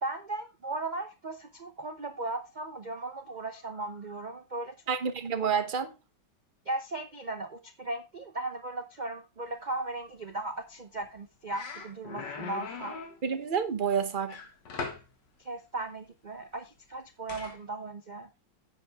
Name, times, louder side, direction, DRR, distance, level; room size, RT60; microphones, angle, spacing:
voice 1, 0.0-4.7 6.7-13.0 15.4-18.3, right 2 dB, 90° right, 0.4 m, -37 dB
voice 2, 4.9-5.9 13.2-14.4, right 6 dB, 40° right, 0.8 m, -29 dB
sound 1, 11.0-11.2 11.5-13.2 14.3-15.1 17.3-17.6, left 5 dB, 70° left, 2.3 m, -39 dB
10.0 x 7.5 x 3.5 m
omnidirectional pair, 2.0 m